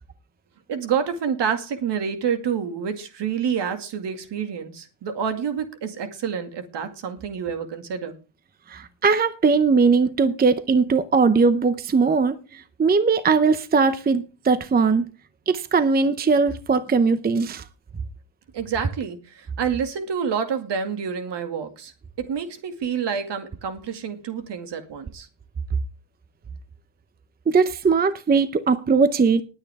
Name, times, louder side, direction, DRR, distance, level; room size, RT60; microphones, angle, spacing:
voice 1, 0.7-8.2 18.5-21.9 22.2-25.3, right 7 dB, 55° right, 2.3 m, -28 dB
voice 2, 8.7-15.1 15.5-17.6 27.5-29.4, right 4 dB, 20° right, 0.6 m, -20 dB
20.0 x 8.8 x 3.5 m
cardioid pair, 140°, 49 cm